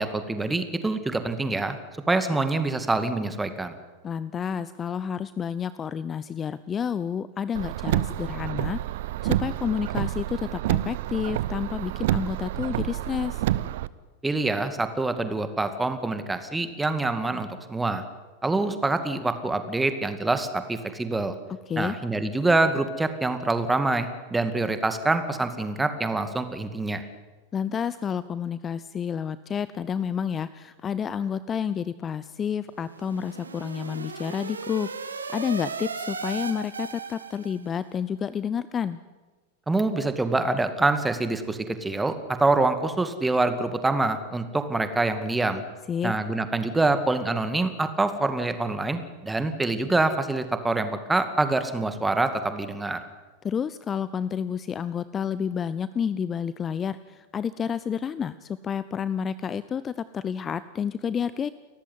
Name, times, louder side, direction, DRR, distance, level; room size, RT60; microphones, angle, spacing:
voice 1, 0.0-1.8 2.1-3.7 14.2-18.0 18.4-21.4 21.8-27.0 39.7-45.6 46.0-53.0, right 2 dB, 10° right, 9 dB, 2.2 m, -25 dB
voice 2, 4.0-8.8 9.2-13.4 21.7-22.0 27.5-39.0 45.9-46.1 53.4-61.5, left 7 dB, 25° left, 16 dB, 0.7 m, -30 dB
Car, 7.5-13.9, right 14 dB, 55° right, 0.8 m, -28 dB
sound 1, 32.7-37.7, right 4 dB, 75° right, 1.9 m, -36 dB
29.5 x 14.5 x 9.6 m, 1.3 s
figure-of-eight pair, 90°, 0 cm